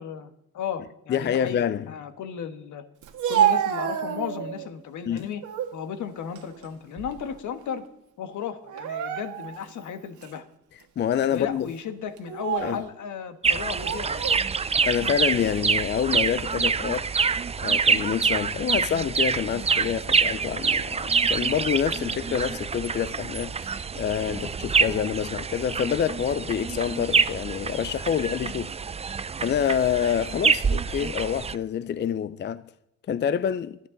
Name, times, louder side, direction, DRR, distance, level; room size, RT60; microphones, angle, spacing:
voice 1, 0.0-2.8 3.3-5.4 5.7-7.8 8.2-10.4 11.3-14.3, left 8 dB, 75° left, 1.4 m, -35 dB
voice 2, 1.1-1.9 5.1-5.3 11.0-11.7 12.6-12.8 14.9-17.1 17.6-28.7 29.4-32.7 33.1-33.8, left 8 dB, 35° left, 0.4 m, -27 dB
Speech, 3.0-4.7 5.2-5.7 6.2-7.4 7.7-7.9 8.7-9.7 10.2-10.3 11.1-11.4 12.2-12.9 13.7-14.4, right 9 dB, 80° right, 1.7 m, -28 dB
sound 1, 13.4-31.6, right 5 dB, 20° right, 0.4 m, -26 dB
24.5 x 8.6 x 3.9 m
cardioid pair, 90°, 30 cm